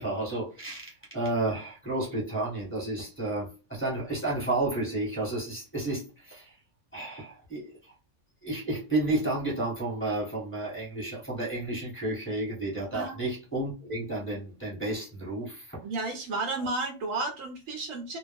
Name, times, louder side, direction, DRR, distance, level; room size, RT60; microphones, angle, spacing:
voice 1, 0.0-6.5 6.9-7.7 8.4-15.8, right 2 dB, 10° left, 1.1 m, -31 dB
voice 2, 15.8-18.2, right 3 dB, 70° right, 0.9 m, -32 dB
2.4 x 2.1 x 3.3 m
omnidirectional pair, 1.5 m